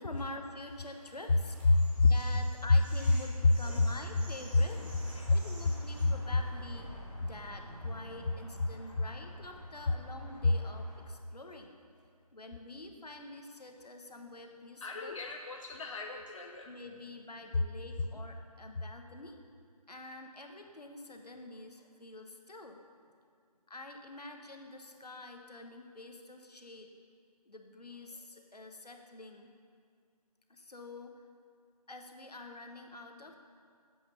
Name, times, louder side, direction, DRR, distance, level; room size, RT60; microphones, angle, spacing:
voice 1, 0.0-1.5 2.1-4.8 5.3-6.9 7.2-11.8 12.3-15.2 16.6-19.4 19.9-22.8 23.7-26.9 27.5-29.5 30.5-31.1 31.9-33.4, left 2 dB, 75° left, 4 dB, 1.1 m, -47 dB
sound 1, 0.6-6.0, right 1 dB, 15° right, 1.0 m, -54 dB
voice 2, 1.7-2.1 3.7-3.8 4.8-4.9 5.1-5.3 14.8-16.7, left 3 dB, 50° left, 3 dB, 0.5 m, -29 dB
sound 2, 3.6-11.0, equal, ahead, 1.9 m, -49 dB
7.7 x 6.6 x 6.5 m, 2.1 s
figure-of-eight pair, 155°, 20 cm